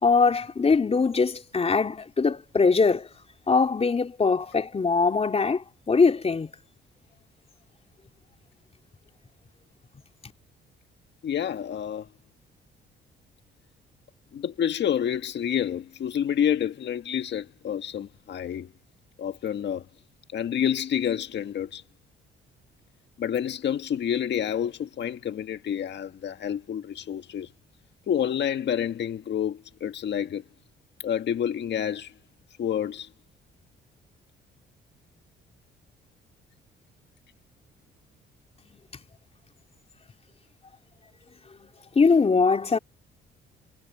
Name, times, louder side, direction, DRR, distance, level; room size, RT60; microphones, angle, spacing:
voice 1, 0.0-3.1 3.5-6.5 41.9-42.8, left 4 dB, 30° left, 3.2 m, -22 dB
voice 2, 11.2-12.1 14.3-18.7 19.2-19.9 20.3-21.8 23.2-27.5 28.1-30.4 31.0-32.1 32.6-33.1, left 9 dB, 60° left, 1.7 m, -28 dB
cardioid pair, 90°, 20 cm